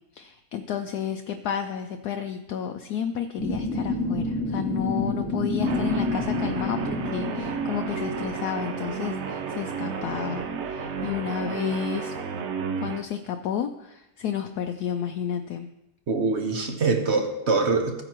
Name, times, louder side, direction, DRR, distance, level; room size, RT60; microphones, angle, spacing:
voice 1, 0.1-12.1 12.8-15.7, left 8 dB, 70° left, 6 dB, 1.0 m, -31 dB
sound 1, 3.4-8.4, left 2 dB, 15° left, 0.4 m, -28 dB
Guitar, 5.6-13.0, right 5 dB, 60° right, 0.7 m, -32 dB
voice 2, 16.1-18.0, right 4 dB, 45° right, 4 dB, 1.2 m, -24 dB
14.5 x 9.0 x 3.0 m, 0.91 s
omnidirectional pair, 1.9 m